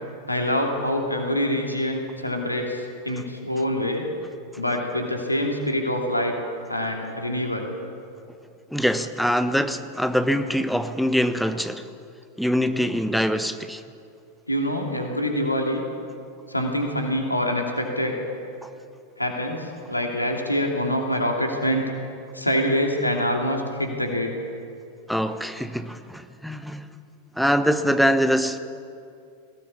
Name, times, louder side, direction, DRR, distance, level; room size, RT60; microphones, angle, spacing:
voice 1, 0.3-4.1 4.6-6.3 6.7-7.7 14.5-15.8 16.5-18.2 19.2-21.8 22.3-24.3, equal, 85° left, 1 dB, 2.9 m, -25 dB
voice 2, 8.7-11.8 12.4-13.8 25.1-26.9 27.4-28.6, equal, ahead, 10 dB, 1.1 m, -23 dB
20.5 x 17.5 x 8.6 m, 2.4 s
figure-of-eight pair, 90°, 0 cm